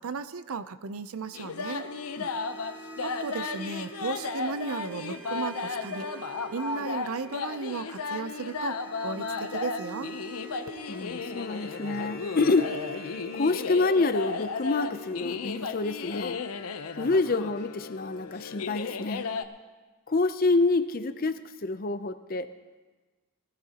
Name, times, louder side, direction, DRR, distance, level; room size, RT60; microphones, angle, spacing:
voice 1, 0.0-1.9 3.0-6.1 6.5-8.8 9.0-9.3 9.5-10.1, right 4 dB, 75° right, 13 dB, 0.6 m, -35 dB
sound 1, 1.2-16.2, right 1 dB, 10° right, 2.0 m, -45 dB
sound 2, 1.3-19.4, left 4 dB, 85° left, 0.7 m, -35 dB
voice 2, 10.9-12.8 13.3-16.4 17.0-19.3 20.1-22.5, left 3 dB, 40° left, 11 dB, 0.6 m, -27 dB
19.5 x 15.5 x 2.9 m, 1.3 s
head